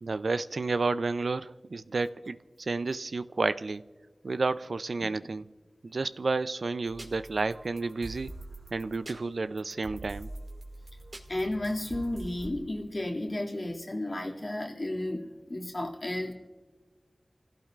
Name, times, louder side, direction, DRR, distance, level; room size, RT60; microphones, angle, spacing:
voice 1, 0.0-3.8 4.2-5.5 5.8-8.3 8.7-10.3, right 3 dB, 80° right, 0.4 m, -31 dB
sound 1, 6.9-12.5, right 2 dB, 55° right, 2.2 m, -45 dB
voice 2, 11.3-16.3, left 1 dB, 50° left, 2.3 m, -33 dB
29.5 x 16.0 x 2.5 m
wide cardioid pair, 55°, 0 cm